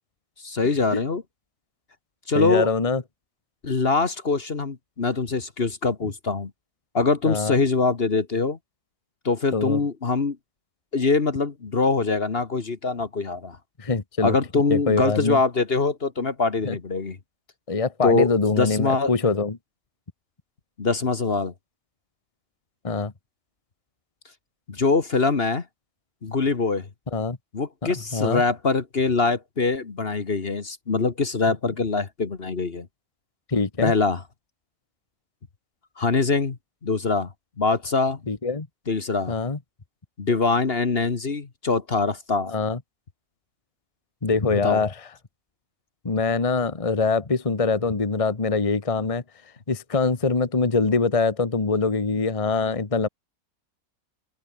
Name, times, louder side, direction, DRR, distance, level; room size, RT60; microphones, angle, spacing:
voice 1, 0.4-1.2 2.3-2.7 3.6-6.5 6.9-8.6 9.3-10.4 10.9-13.6 14.2-17.2 18.0-19.1 20.8-21.5 24.7-25.6 26.2-26.9 27.5-32.9 33.8-34.2 36.0-36.6 36.8-37.3 37.6-38.2 38.9-39.4 40.2-42.5 44.5-44.8, left 4 dB, 45° left, 1.7 m, -23 dB
voice 2, 2.3-3.0 7.2-7.6 9.5-9.8 13.8-14.4 14.7-15.4 16.6-16.8 17.7-19.6 22.8-23.1 27.1-27.4 27.8-28.4 33.5-33.9 38.3-38.7 39.3-39.6 42.5-42.8 44.2-44.9 46.0-49.2 49.7-53.1, left 4 dB, 25° left, 1.4 m, -23 dB
open air
omnidirectional pair, 1.5 m